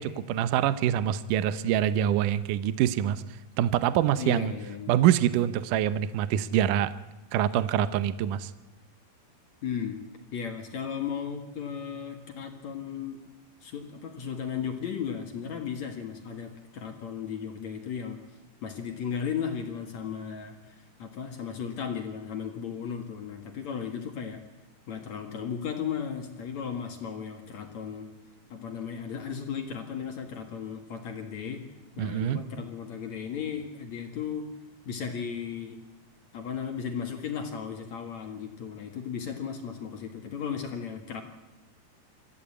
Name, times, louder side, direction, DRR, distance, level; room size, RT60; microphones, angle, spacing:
voice 1, 0.0-3.2 3.6-4.5 4.9-6.9 7.3-8.5 32.0-32.4, right 11 dB, 75° right, 14 dB, 2.0 m, -25 dB
voice 2, 4.2-5.0 9.6-10.0 10.3-13.2 13.6-18.2 18.6-24.4 24.9-28.1 28.5-31.6 32.0-34.4 34.9-35.8 36.3-41.2, left 7 dB, 55° left, 4 dB, 2.5 m, -35 dB
25.0 x 14.5 x 8.6 m, 1.1 s
omnidirectional pair, 4.6 m